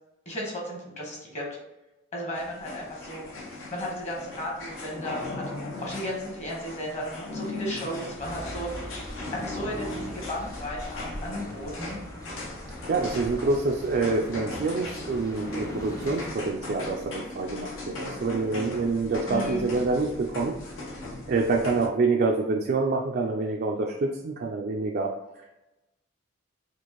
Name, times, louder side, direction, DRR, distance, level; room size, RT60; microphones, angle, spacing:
voice 1, 0.2-1.5 2.1-3.2 3.7-9.0 9.3-12.0 19.3-19.7, equal, 35° left, -2 dB, 1.2 m, -35 dB
sound 1, 2.3-21.9, left 2 dB, 75° left, 0.8 m, -38 dB
sound 2, 8.2-16.3, equal, 15° left, 0.7 m, -42 dB
voice 2, 12.9-20.5 21.3-25.1, right 3 dB, 50° right, 0 dB, 0.3 m, -26 dB
4.4 x 2.5 x 2.9 m, 0.97 s
head